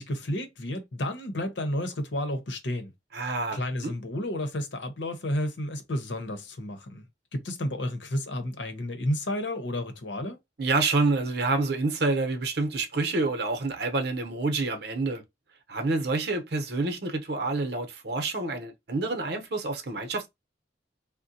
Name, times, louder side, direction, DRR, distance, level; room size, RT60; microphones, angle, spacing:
voice 1, 0.0-2.9 3.2-7.1 7.3-10.4, left 1 dB, 80° left, 0.9 m, -31 dB
voice 2, 3.1-3.9 10.6-15.2 15.7-20.3, right 3 dB, 60° right, 0.8 m, -28 dB
3.8 x 2.2 x 2.7 m
head